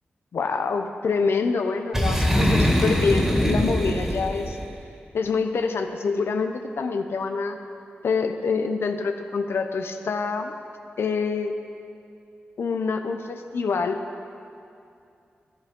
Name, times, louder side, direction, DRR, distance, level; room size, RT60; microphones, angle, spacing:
voice 1, 0.3-4.6 5.1-7.6 8.0-10.5 11.0-11.5 12.6-14.0, left 4 dB, 90° left, 6 dB, 0.8 m, -26 dB
Boom, 1.9-4.7, equal, 10° right, 2.2 m, -22 dB
15.0 x 11.0 x 5.3 m, 2.5 s
wide cardioid pair, 100°, 4 cm